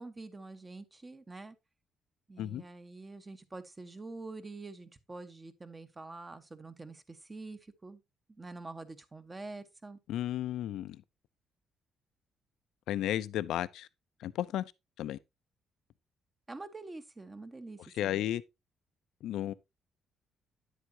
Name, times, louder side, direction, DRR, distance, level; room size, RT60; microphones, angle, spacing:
voice 1, 0.0-1.6 2.3-8.0 8.3-10.0 16.5-18.3, right 3 dB, 25° right, 1.3 m, -46 dB
voice 2, 10.1-11.0 12.9-13.9 14.2-14.6 15.0-15.2 18.0-18.4 19.2-19.5, left 12 dB, 85° left, 0.5 m, -33 dB
10.0 x 8.1 x 2.8 m
cardioid pair, 90°, 0 cm